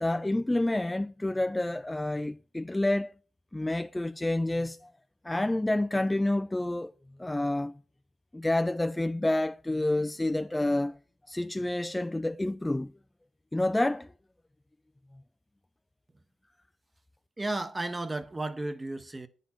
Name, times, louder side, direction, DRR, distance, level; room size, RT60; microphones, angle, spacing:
voice 1, 0.0-3.1 3.5-4.9 5.2-6.9 7.2-7.7 8.3-10.9 11.3-12.9 13.5-14.1, left 1 dB, 15° left, 0.3 m, -28 dB
voice 2, 17.4-19.3, right 2 dB, 20° right, 0.8 m, -33 dB
9.1 x 4.1 x 5.8 m
cardioid pair, 75°, 0 cm